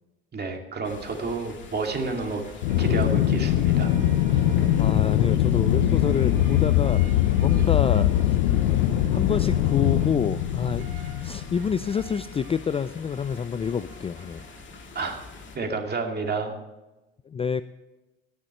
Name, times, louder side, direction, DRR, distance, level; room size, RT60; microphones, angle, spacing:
voice 1, 0.3-2.4 2.8-4.0 14.9-15.2 15.5-16.5, right 4 dB, 35° right, 3 dB, 2.3 m, -30 dB
sound 1, 0.8-15.6, left 3 dB, 40° left, 2.1 m, -43 dB
sound 2, 2.0-14.4, right 5 dB, 90° right, 2.7 m, -51 dB
Aircraft, 2.6-12.1, left 12 dB, 85° left, 0.7 m, -22 dB
voice 2, 4.8-7.0 7.4-8.1 9.1-10.9 11.2-14.5 17.3-17.6, left 7 dB, 20° left, 14 dB, 0.3 m, -27 dB
18.0 x 6.6 x 4.4 m, 1.1 s
supercardioid pair, 80°, 30 cm